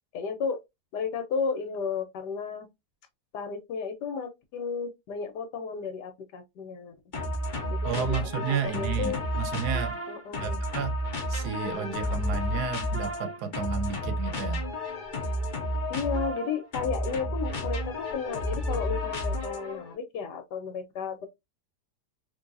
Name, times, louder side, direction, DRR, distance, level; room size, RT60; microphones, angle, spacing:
voice 1, 0.1-0.6 0.9-2.7 3.3-6.9 7.7-9.2 10.1-10.6 15.9-21.3, left 6 dB, 75° left, 1.4 m, -33 dB
sound 1, 7.1-19.9, equal, 45° left, 0.7 m, -31 dB
voice 2, 7.8-10.0 10.4-11.0 11.3-14.6, right 7 dB, 75° right, 1.1 m, -32 dB
3.8 x 2.6 x 2.5 m
omnidirectional pair, 1.8 m